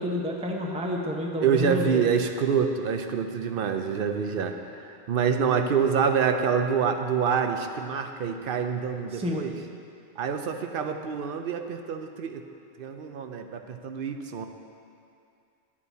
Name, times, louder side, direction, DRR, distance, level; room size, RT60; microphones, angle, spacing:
voice 1, 0.0-2.1 9.1-9.4, left 1 dB, 5° right, 0 dB, 0.6 m, -30 dB
voice 2, 1.4-9.5 10.2-12.4 12.8-14.5, right 6 dB, 65° right, 6 dB, 0.8 m, -26 dB
10.5 x 8.5 x 4.1 m, 2.4 s
omnidirectional pair, 1.0 m